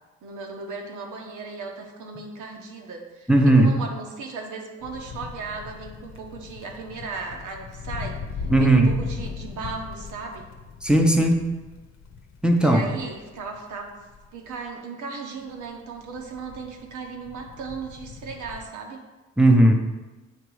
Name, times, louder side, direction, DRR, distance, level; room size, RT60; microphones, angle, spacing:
voice 1, 0.2-8.2 8.6-10.5 12.6-14.0 14.3-19.0, right 4 dB, 75° right, 2 dB, 1.1 m, -36 dB
voice 2, 3.3-3.8 8.5-8.9 10.8-11.4 12.4-12.8 19.4-19.7, right 1 dB, 5° right, 3 dB, 0.7 m, -17 dB
sound 1, 4.8-14.6 15.5-18.7, left 5 dB, 60° left, 0.8 m, -38 dB
7.9 x 2.9 x 4.7 m, 1.2 s
cardioid pair, 90°, 30 cm